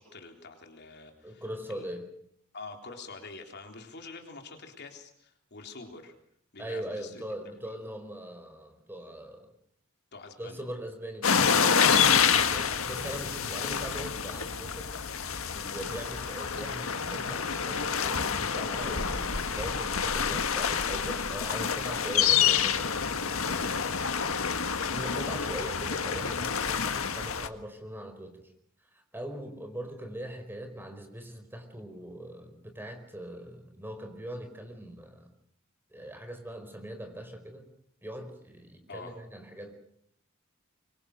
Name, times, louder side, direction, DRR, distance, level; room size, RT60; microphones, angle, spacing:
voice 1, 0.0-1.4 1.7-1.9 2.5-6.1 6.5-7.2 10.1-10.6 20.2-20.5 24.8-25.0 38.9-39.2, left 3 dB, 55° left, 4 dB, 3.7 m, -46 dB
voice 2, 1.2-2.1 6.6-9.5 10.4-14.9 15.5-23.9 24.9-28.4 28.9-35.3 35.9-37.7 38.0-39.8, right 1 dB, 10° right, 6 dB, 4.6 m, -41 dB
sound 1, 11.2-27.5, left 7 dB, 85° left, 1.6 m, -28 dB
24.5 x 24.5 x 6.6 m, 0.69 s
head